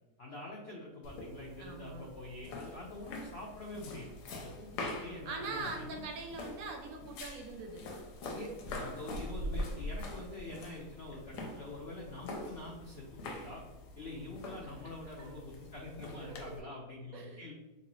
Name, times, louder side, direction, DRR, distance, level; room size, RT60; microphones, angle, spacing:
voice 1, 0.2-6.0 8.3-13.6 14.0-17.5, left 2 dB, 70° left, -3 dB, 0.6 m, -45 dB
sound 1, 1.0-16.6, left 1 dB, 90° left, 1.2 m, -44 dB
voice 2, 1.6-2.1 5.3-7.8 14.6-14.9 15.2-15.3 16.2-16.7 17.1-17.4, right 3 dB, 70° right, 2 dB, 0.9 m, -43 dB
2.9 x 2.7 x 2.9 m, 1.1 s
omnidirectional pair, 1.7 m